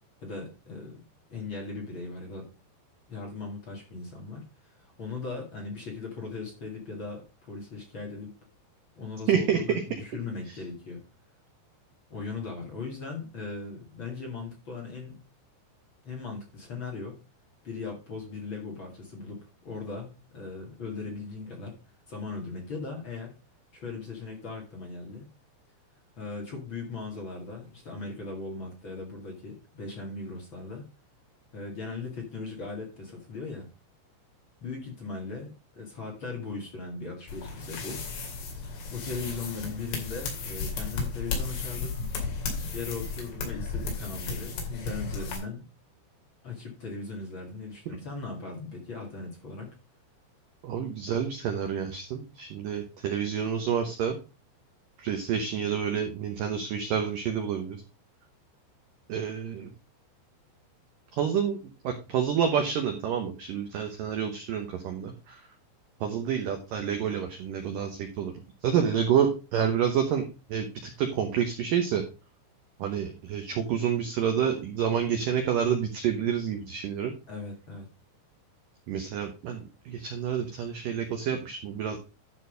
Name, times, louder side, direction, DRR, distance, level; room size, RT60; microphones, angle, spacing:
voice 1, 0.2-0.9 1.3-2.4 3.1-8.3 9.0-11.0 12.1-15.2 16.0-17.1 17.6-21.7 22.1-23.3 23.7-25.3 26.2-30.8 31.5-33.7 34.6-38.0 38.9-42.0 42.7-45.6 46.4-49.7 77.3-77.9, left 4 dB, 40° left, 0 dB, 2.0 m, -38 dB
voice 2, 9.3-9.8 50.6-54.2 55.0-57.8 59.1-59.7 61.1-65.5 66.0-72.0 72.8-77.1 78.9-82.0, right 8 dB, 90° right, 4 dB, 1.9 m, -28 dB
sound 1, 37.3-45.4, left 4 dB, 65° left, 4.5 m, -34 dB
12.0 x 4.3 x 5.2 m, 0.32 s
omnidirectional pair, 5.5 m